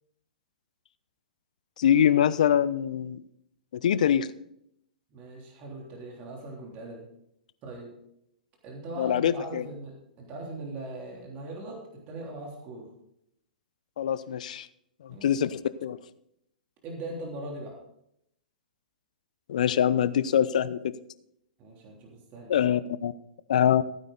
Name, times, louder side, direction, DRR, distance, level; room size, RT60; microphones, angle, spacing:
voice 1, 1.8-3.2 3.8-4.3 9.0-9.6 14.0-14.7 15.2-16.0 19.5-20.9 22.5-23.1 23.5-23.8, left 9 dB, 60° left, 16 dB, 0.7 m, -24 dB
voice 2, 5.1-7.1 7.6-7.9 8.6-12.9 15.1-15.6 16.8-17.8 21.6-22.5, right 2 dB, 35° right, -1 dB, 3.3 m, -40 dB
15.5 x 9.2 x 4.0 m, 0.75 s
figure-of-eight pair, 110°, 5 cm